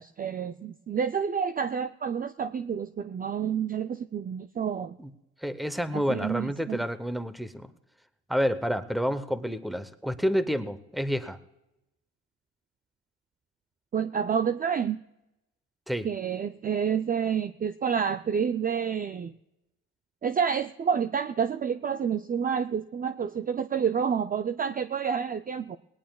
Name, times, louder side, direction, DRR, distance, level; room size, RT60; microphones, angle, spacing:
voice 1, 0.0-5.0 5.9-6.8 13.9-15.0 16.0-19.3 20.2-25.8, right 7 dB, 30° right, 9 dB, 0.4 m, -29 dB
voice 2, 5.4-7.7 8.3-11.4 15.9-16.1, equal, ahead, 13 dB, 0.8 m, -29 dB
19.5 x 18.5 x 2.3 m, 0.92 s
cardioid pair, 90°, 30 cm